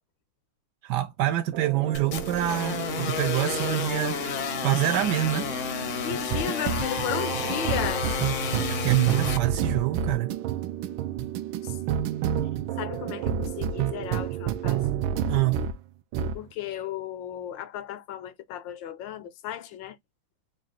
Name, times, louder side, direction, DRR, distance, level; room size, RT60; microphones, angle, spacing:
voice 1, 0.8-4.2 4.6-5.5 8.7-10.3 15.3-15.6, right 14 dB, 70° right, 1.1 m, -26 dB
sound 1, 1.5-15.8 16.1-16.4, right 9 dB, 90° right, 1.4 m, -30 dB
sound 2, 1.9-9.4, left 6 dB, 60° left, 0.8 m, -31 dB
voice 2, 6.0-8.2 11.6-11.8 12.8-14.8 16.3-20.0, left 10 dB, 75° left, 1.3 m, -35 dB
4.0 x 2.3 x 3.7 m
omnidirectional pair, 2.1 m